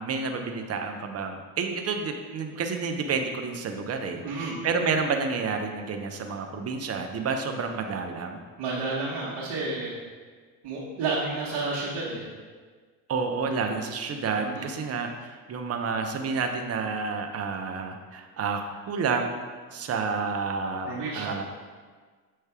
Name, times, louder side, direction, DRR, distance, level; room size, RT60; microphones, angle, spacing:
voice 1, 0.0-8.4 13.1-19.4 19.7-20.9 21.1-21.4, right 5 dB, 30° right, 4 dB, 0.8 m, -30 dB
voice 2, 4.2-4.6 8.6-10.0 10.6-12.3 13.6-13.7 14.4-14.7 20.8-21.4, right 3 dB, 55° right, -8 dB, 1.4 m, -31 dB
6.6 x 3.3 x 4.8 m, 1.5 s
hypercardioid pair, 75°, 47 cm